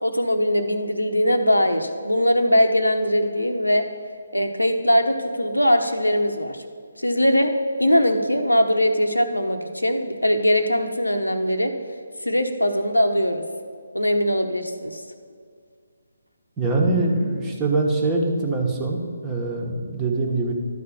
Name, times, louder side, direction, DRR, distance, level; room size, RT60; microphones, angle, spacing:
voice 1, 0.0-3.9 4.3-6.6 7.0-7.5 7.8-11.7 12.2-13.4 13.9-15.0, equal, 90° left, 6 dB, 0.9 m, -21 dB
voice 2, 16.6-20.5, right 2 dB, 15° right, 0 dB, 1.2 m, -23 dB
11.5 x 4.3 x 7.2 m, 2.1 s
figure-of-eight pair, 145°, 0 cm